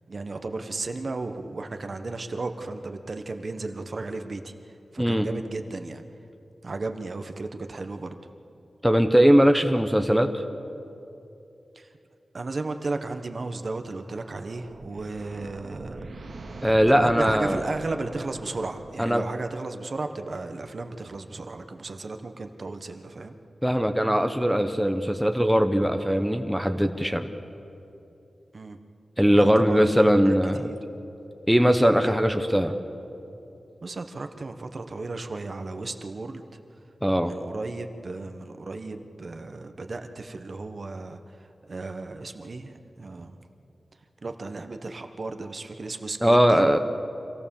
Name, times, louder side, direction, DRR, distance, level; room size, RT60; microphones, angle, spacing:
voice 1, 0.1-6.0 6.6-8.1 11.7-11.9 12.3-16.0 16.9-23.4 28.5-28.8 29.3-30.8 33.8-36.6 37.2-43.4 44.2-46.7, right 3 dB, 45° right, 7 dB, 1.2 m, -35 dB
voice 2, 8.8-10.4 16.6-17.6 19.0-19.2 23.6-27.3 29.2-30.7 31.5-32.7 37.0-37.3 46.2-46.8, equal, ahead, 6 dB, 0.9 m, -20 dB
sound 1, 13.9-19.4, right 2 dB, 70° right, 2.3 m, -43 dB
26.0 x 16.5 x 7.2 m, 2.8 s
wide cardioid pair, 130°, 0 cm